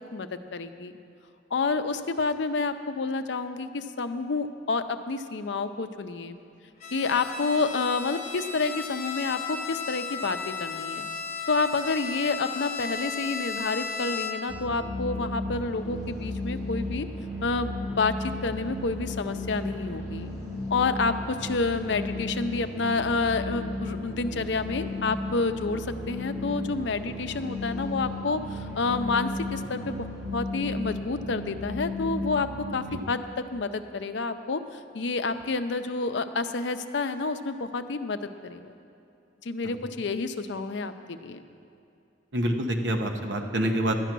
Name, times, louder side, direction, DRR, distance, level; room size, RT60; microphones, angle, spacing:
voice 1, 0.1-1.0 1.5-6.4 6.9-11.1 11.5-17.1 17.4-20.3 20.7-30.1 30.3-33.2 33.5-38.7 39.4-41.4, left 4 dB, 70° left, 9 dB, 0.6 m, -29 dB
Bowed string instrument, 6.8-14.6, left 5 dB, 35° left, 1.1 m, -35 dB
sound 1, 14.5-33.0, left 2 dB, 15° right, 2.3 m, -34 dB
voice 2, 42.3-44.0, right 1 dB, 70° right, 3 dB, 1.1 m, -27 dB
12.0 x 9.2 x 6.0 m, 2.6 s
head